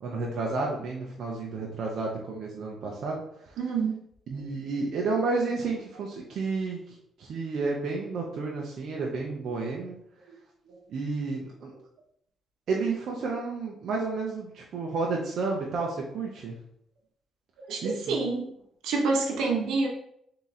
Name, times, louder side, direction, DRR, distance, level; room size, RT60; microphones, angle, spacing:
voice 1, 0.0-3.5 4.3-10.0 10.9-11.7 12.7-16.6 17.8-18.1, right 3 dB, 65° right, -2 dB, 0.7 m, -31 dB
voice 2, 3.6-4.0 9.7-9.8 17.7-18.5 18.8-19.9, right 3 dB, 85° right, 0 dB, 1.0 m, -27 dB
3.7 x 2.9 x 4.1 m, 0.72 s
cardioid pair, 90°, 0 cm